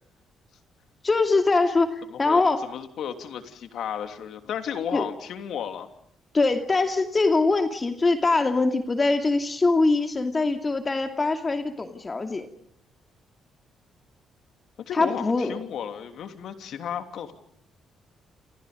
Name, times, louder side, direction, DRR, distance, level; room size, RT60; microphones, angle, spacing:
voice 1, 1.0-2.6 4.9-5.1 6.3-12.5 14.9-15.6, left 3 dB, 30° left, 6 dB, 2.6 m, -23 dB
voice 2, 2.1-2.4 2.7-5.9 14.9-17.3, left 8 dB, 70° left, 7 dB, 3.2 m, -33 dB
29.5 x 28.5 x 5.3 m, 0.68 s
cardioid pair, 90°, 0 cm